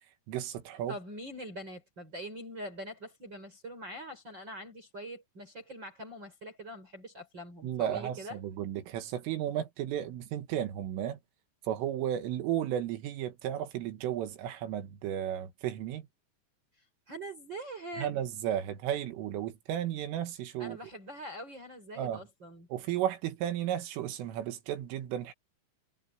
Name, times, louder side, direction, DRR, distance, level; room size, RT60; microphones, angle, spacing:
voice 1, 0.3-1.0 7.6-11.2 11.7-16.1 18.0-20.8 22.0-22.2 22.7-25.3, right 11 dB, 75° right, 4.2 m, -34 dB
voice 2, 0.9-8.4 17.1-18.2 20.6-22.7, equal, 20° right, 5.7 m, -43 dB
omnidirectional pair, 5.8 m